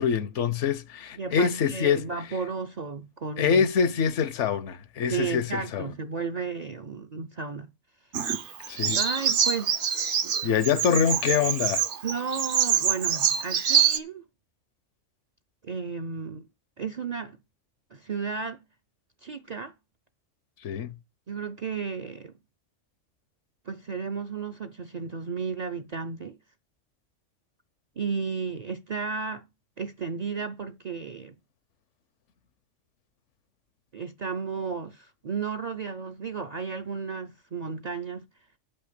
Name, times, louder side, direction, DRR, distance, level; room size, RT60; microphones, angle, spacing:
voice 1, 0.0-2.1 3.4-5.9 8.7-9.0 10.4-11.9 20.6-21.0, left 7 dB, 75° left, 1.0 m, -25 dB
voice 2, 1.2-3.7 5.1-7.7 8.9-9.8 10.2-10.4 12.0-14.2 15.6-16.4 16.8-17.4 17.9-18.6 19.2-19.7 21.3-22.3 23.7-26.4 28.0-29.5 29.8-31.3 33.9-38.2, right 5 dB, 50° right, 0.5 m, -33 dB
Bird vocalization bird call bird song, 8.1-14.0, right 8 dB, 65° right, 1.1 m, -25 dB
8.5 x 5.6 x 6.7 m
omnidirectional pair, 1.3 m